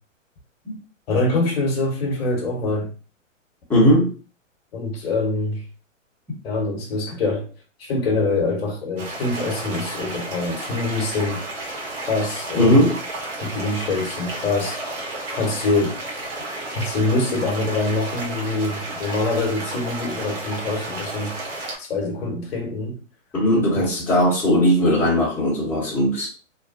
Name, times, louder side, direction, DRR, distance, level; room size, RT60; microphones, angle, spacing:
voice 1, 1.1-2.9 4.7-5.6 6.4-7.5 7.8-11.4 12.0-12.9 13.4-14.8 15.3-16.0 16.7-21.3 21.8-23.0 23.7-23.8, left 2 dB, 50° left, 0.9 m, -24 dB
voice 2, 3.7-4.1 12.6-13.0 23.3-26.3, equal, 5° left, 0.8 m, -18 dB
sound 1, 9.0-21.8, right 2 dB, 50° right, 1.0 m, -32 dB
2.5 x 2.1 x 2.4 m
hypercardioid pair, 125°, 39 cm